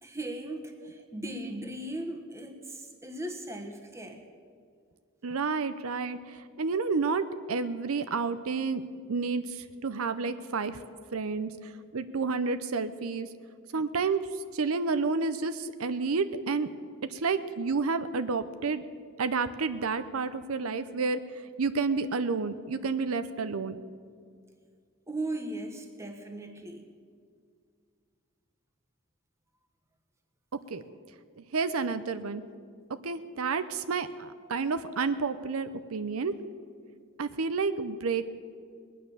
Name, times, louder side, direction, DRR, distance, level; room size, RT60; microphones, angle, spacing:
voice 1, 0.0-4.2 25.1-26.8, right 1 dB, 15° right, 4 dB, 1.3 m, -38 dB
voice 2, 5.2-8.8 9.1-10.8 11.1-13.3 13.7-14.2 14.5-16.7 17.1-18.8 19.2-23.8 30.7-30.8 31.4-32.4 33.0-36.3 37.2-38.2, right 4 dB, 80° right, 11 dB, 0.6 m, -30 dB
20.5 x 9.4 x 7.0 m, 2.1 s
head